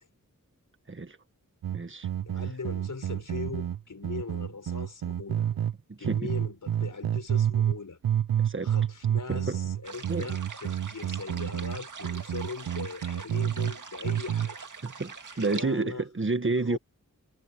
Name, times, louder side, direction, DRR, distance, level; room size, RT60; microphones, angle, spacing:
sound 1, 1.6-5.7 6.0-7.8 8.0-13.7 14.0-14.5, right 10 dB, 85° right, 0.5 m, -29 dB
voice 1, 1.7-2.1 5.9-6.3 8.4-8.7 9.3-9.6 10.1-10.3 14.8-16.8, right 3 dB, 35° right, 1.5 m, -30 dB
voice 2, 2.2-5.5 6.0-8.0 8.6-14.6 15.3-16.0 16.7-16.8, left 4 dB, 65° left, 5.3 m, -40 dB
sound 2, 9.8-15.6, right 5 dB, 65° right, 2.0 m, -43 dB
wide cardioid pair, 100°, 34 cm